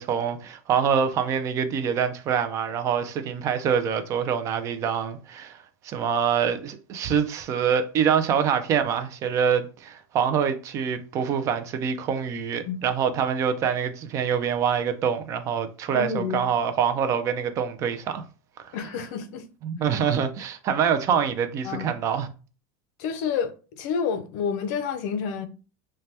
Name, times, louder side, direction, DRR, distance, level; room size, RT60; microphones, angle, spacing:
voice 1, 0.0-5.6 5.8-18.2 18.6-18.8 19.6-22.3, right 7 dB, 30° right, 0.3 m, -25 dB
voice 2, 15.9-16.4 18.7-19.5 21.6-21.9 23.0-25.5, left 6 dB, 65° left, 0.5 m, -29 dB
2.7 x 2.2 x 3.2 m
supercardioid pair, 160°, 10 cm